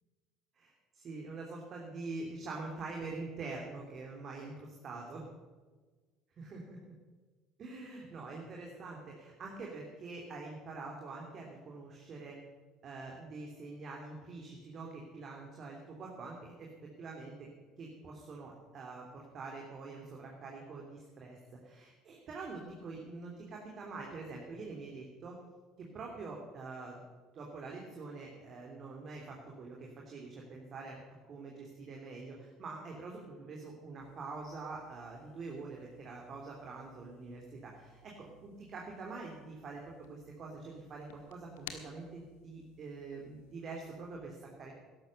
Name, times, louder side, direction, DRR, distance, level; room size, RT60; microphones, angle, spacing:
voice 1, 0.5-5.3 6.4-6.9 7.6-12.4 12.8-17.5 17.8-25.4 25.8-27.0 27.3-31.0 31.3-39.8 40.1-44.7, right 3 dB, 45° right, -1 dB, 3.0 m, -45 dB
sound 1, 34.0-44.2, left 5 dB, 75° left, 1.5 m, -57 dB
14.0 x 11.5 x 6.7 m, 1.4 s
hypercardioid pair, 65°, 0 cm